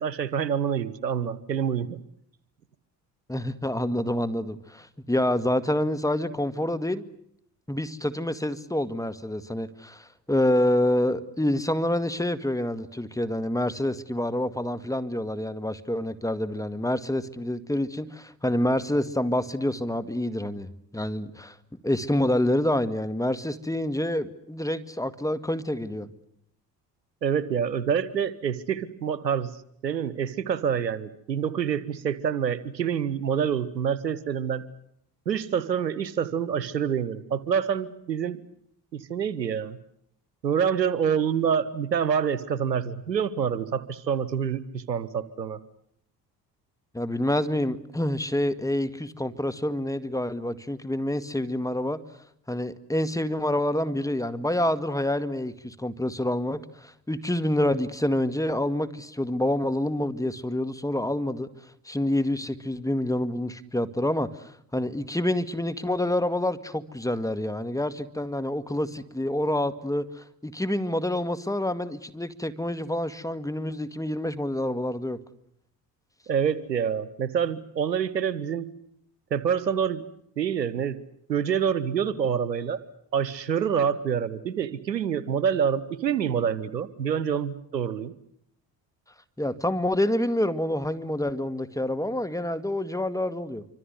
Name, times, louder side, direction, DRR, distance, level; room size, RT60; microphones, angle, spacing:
voice 1, 0.0-2.0 27.2-29.5 29.8-34.6 35.3-38.4 38.9-39.8 40.4-45.6 76.3-78.7 79.3-80.1 80.4-81.0 81.3-82.8 83.1-88.1, right 7 dB, 85° right, 18 dB, 1.0 m, -27 dB
voice 2, 3.3-7.0 7.7-20.7 20.9-21.6 21.8-26.1 46.9-52.0 52.5-61.5 61.9-75.2 89.4-93.6, left 1 dB, 5° left, 12 dB, 1.9 m, -27 dB
26.5 x 25.0 x 8.1 m, 0.72 s
figure-of-eight pair, 50°, 49 cm